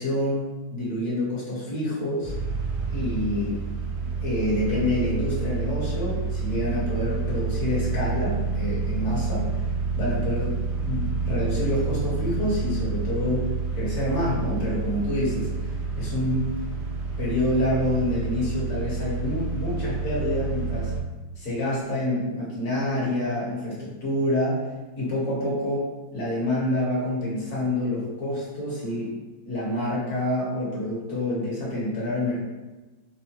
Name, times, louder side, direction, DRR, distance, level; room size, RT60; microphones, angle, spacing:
voice 1, 0.0-2.3 2.9-3.6 4.0-9.6 9.9-15.7 15.9-16.5 17.2-20.9 21.4-24.7 25.0-29.2 29.4-32.4, left 1 dB, 40° left, -7 dB, 1.3 m, -27 dB
sound 1, 2.2-21.0, right 4 dB, 75° right, 0.8 m, -29 dB
4.7 x 2.1 x 3.0 m, 1.2 s
omnidirectional pair, 2.3 m